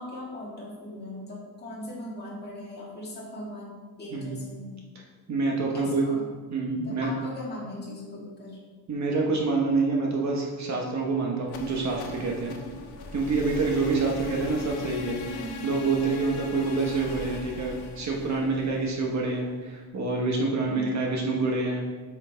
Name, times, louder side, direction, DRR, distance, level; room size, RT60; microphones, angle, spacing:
voice 1, 0.0-4.8 5.7-6.3 6.8-8.6 15.3-15.9 20.6-21.2, left 1 dB, 25° left, -5 dB, 2.0 m, -39 dB
voice 2, 5.3-6.1 6.5-7.1 8.9-12.6 13.1-15.2 15.6-21.8, right 3 dB, 45° right, -1 dB, 1.1 m, -27 dB
sound 1, 11.4-19.4, left 4 dB, 85° left, 0.9 m, -40 dB
8.1 x 5.8 x 3.4 m, 1.4 s
wide cardioid pair, 180°, 38 cm